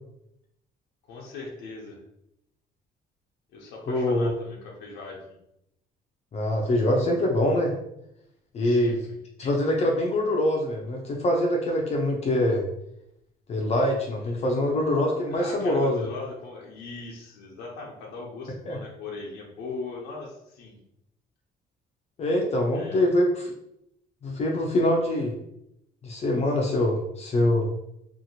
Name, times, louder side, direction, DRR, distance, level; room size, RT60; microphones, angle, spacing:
voice 1, 1.1-2.0 3.5-5.4 8.6-9.0 14.2-14.4 15.3-20.8 22.7-23.1, left 3 dB, 85° left, -2 dB, 0.6 m, -39 dB
voice 2, 3.9-4.3 6.3-7.7 8.5-9.0 9.4-12.6 13.5-16.0 18.7-18.8 22.2-23.5 24.2-25.3 26.0-27.7, left 1 dB, 40° left, 0 dB, 0.5 m, -24 dB
2.7 x 2.5 x 2.8 m, 0.80 s
cardioid pair, 110°, 17 cm